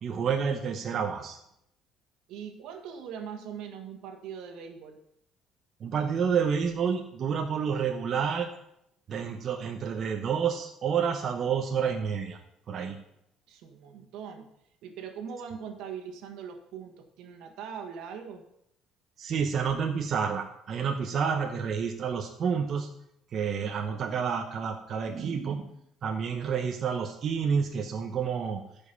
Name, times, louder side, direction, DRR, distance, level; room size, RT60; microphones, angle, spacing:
voice 1, 0.0-1.4 5.8-8.5 9.1-12.4 12.7-13.0 19.2-22.9 23.3-25.7 26.0-28.6, right 6 dB, 45° right, 4 dB, 0.9 m, -29 dB
voice 2, 2.3-5.0 13.5-14.5 14.8-18.4, right 7 dB, 75° right, 5 dB, 1.6 m, -41 dB
14.5 x 5.4 x 5.3 m, 0.76 s
cardioid pair, 130°, 0 cm